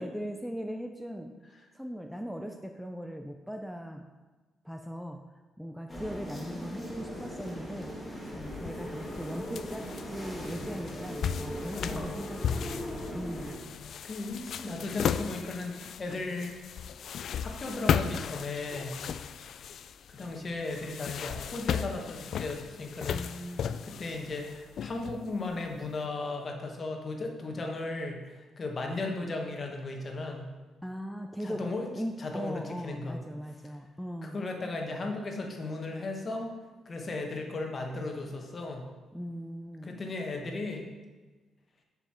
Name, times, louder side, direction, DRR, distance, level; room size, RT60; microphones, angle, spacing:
voice 1, 0.0-1.3 1.7-4.1 4.6-5.2 5.6-14.0 23.1-23.8 29.0-29.3 30.8-31.6 31.9-34.4 39.1-39.9, equal, ahead, 4 dB, 0.4 m, -39 dB
sound 1, 5.9-13.5, equal, 15° left, 2.0 m, -39 dB
sound 2, 8.4-25.9, left 8 dB, 65° left, 0.3 m, -36 dB
voice 2, 11.7-12.1 14.0-16.5 17.4-18.9 20.1-23.2 23.9-30.5 31.4-31.9 32.2-33.2 34.2-36.5 36.8-38.8 39.8-40.9, left 3 dB, 40° left, 2 dB, 1.3 m, -36 dB
7.1 x 5.5 x 4.4 m, 1.3 s
cardioid pair, 90°, 0 cm